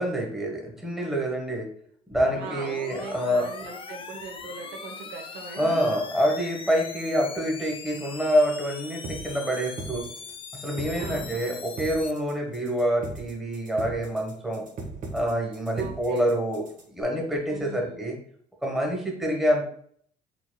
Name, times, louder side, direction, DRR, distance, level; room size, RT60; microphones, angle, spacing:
voice 1, 0.0-1.7 2.1-3.4 5.6-10.0 10.6-14.7 15.1-16.6 16.9-18.2 18.6-19.7, equal, ahead, 0 dB, 1.2 m, -26 dB
sound 1, 2.1-12.1, left 5 dB, 30° left, 0.5 m, -41 dB
voice 2, 2.4-5.8 10.8-11.5 15.7-16.3 17.5-18.1, right 4 dB, 80° right, 4 dB, 1.0 m, -41 dB
sound 2, 9.0-17.0, right 3 dB, 50° right, 1.4 m, -38 dB
4.7 x 4.0 x 2.3 m, 0.62 s
cardioid pair, 110°, 17 cm